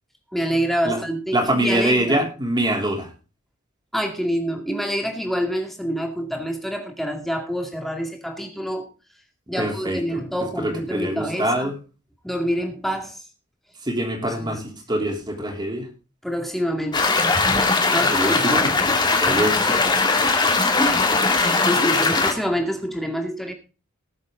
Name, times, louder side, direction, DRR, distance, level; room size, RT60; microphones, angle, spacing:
voice 1, 0.3-2.3 3.9-8.9 9.5-11.7 12.2-13.2 14.4-14.6 16.2-17.1 17.9-18.4 20.6-21.1 21.3-23.5, equal, ahead, 2.1 m, -27 dB
voice 2, 1.3-3.1 9.5-10.2 10.6-11.7 13.8-15.9 18.1-20.0, right 1 dB, 20° right, 3.2 m, -24 dB
sound 1, 16.9-22.3, left 3 dB, 20° left, 2.0 m, -19 dB
19.0 x 7.3 x 3.8 m
head